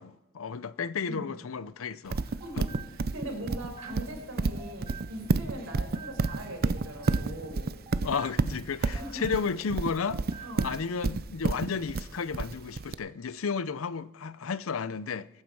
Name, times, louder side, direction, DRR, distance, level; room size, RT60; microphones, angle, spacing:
voice 1, 0.0-2.2 2.6-2.7 8.0-15.3, left 5 dB, 85° left, 0.6 m, -33 dB
sound 1, 2.1-5.4 5.7-9.8 10.0-10.9, right 6 dB, 25° right, 1.2 m, -49 dB
Livestock farm animals working animals, 2.1-12.9, right 3 dB, 50° right, 0.5 m, -29 dB
voice 2, 2.4-2.8 3.1-7.7 8.8-9.3 10.4-10.8, right 1 dB, 85° right, 4.9 m, -40 dB
22.5 x 9.5 x 4.7 m
head